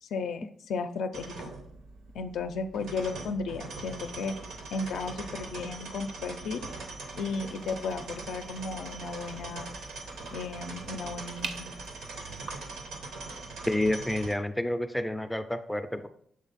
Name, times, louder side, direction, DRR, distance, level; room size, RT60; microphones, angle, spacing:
voice 1, 0.0-1.4 2.1-4.4 4.7-6.7 7.2-9.7 10.3-11.7, left 4 dB, 80° left, 7 dB, 0.4 m, -34 dB
sound 1, 1.1-14.3, right 3 dB, 90° right, 1.1 m, -42 dB
sound 2, 7.3-12.8, right 5 dB, 65° right, 0.6 m, -46 dB
voice 2, 13.7-16.1, left 1 dB, 5° left, 8 dB, 0.3 m, -29 dB
7.4 x 3.6 x 4.0 m, 0.63 s
wide cardioid pair, 155°, 0 cm